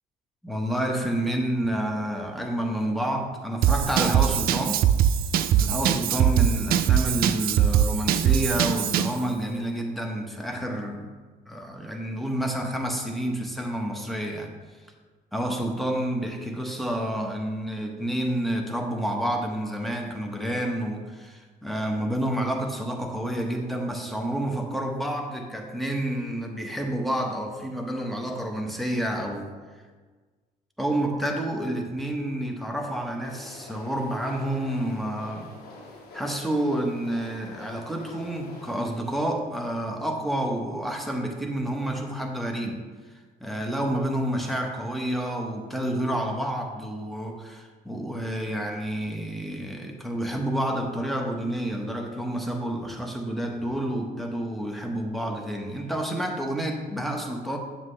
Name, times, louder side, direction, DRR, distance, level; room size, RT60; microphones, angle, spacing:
voice 1, 0.4-4.8 5.6-11.1 11.5-14.5 15.3-29.5 30.8-35.5 36.1-42.8 43.4-57.6, right 1 dB, ahead, 2 dB, 1.1 m, -29 dB
Drum kit / Drum, 3.6-9.2, right 10 dB, 60° right, 0.4 m, -22 dB
sound 1, 33.2-38.9, left 2 dB, 65° left, 2.0 m, -45 dB
7.5 x 7.2 x 3.3 m, 1.4 s
cardioid pair, 110°, 17 cm